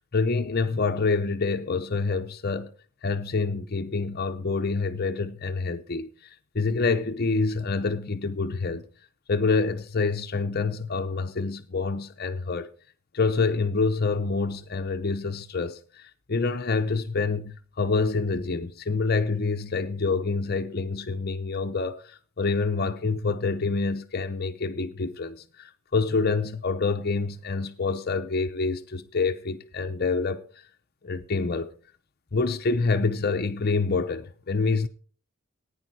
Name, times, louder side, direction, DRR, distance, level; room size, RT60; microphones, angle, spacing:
voice 1, 0.1-2.7 3.0-6.1 6.5-8.9 9.3-12.7 13.1-30.4 31.0-31.7 32.3-34.9, left 4 dB, 45° left, 0.7 m, -27 dB
15.0 x 9.8 x 4.6 m
head